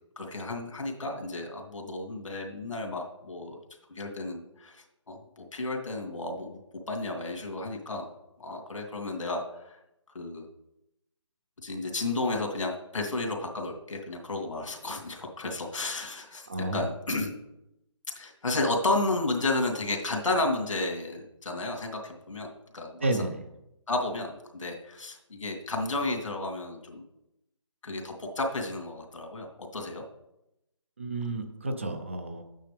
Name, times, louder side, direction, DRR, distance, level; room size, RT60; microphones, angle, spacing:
voice 1, 0.2-3.6 4.0-4.8 5.1-6.6 6.9-8.1 8.4-9.7 10.1-10.5 11.6-17.3 18.2-23.0 23.9-27.0 27.8-30.0, left 2 dB, 75° left, 2 dB, 2.5 m, -32 dB
voice 2, 16.5-16.8 23.0-23.4 31.0-32.4, right 2 dB, 25° right, 6 dB, 0.6 m, -31 dB
11.5 x 8.9 x 3.4 m, 0.89 s
hypercardioid pair, 175°, 16 cm